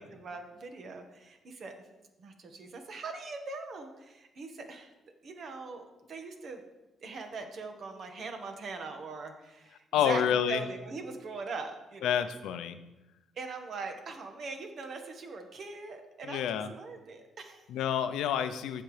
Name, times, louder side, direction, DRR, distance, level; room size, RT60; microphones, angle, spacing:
voice 1, 0.0-1.7 2.2-4.9 5.2-6.6 7.0-12.2 13.3-17.6, right 4 dB, 55° right, 5 dB, 1.5 m, -41 dB
voice 2, 9.9-10.6 12.0-12.8 16.2-16.7 17.7-18.8, left 8 dB, 85° left, 11 dB, 0.6 m, -28 dB
15.5 x 5.8 x 3.3 m, 1.0 s
cardioid pair, 90°, 0 cm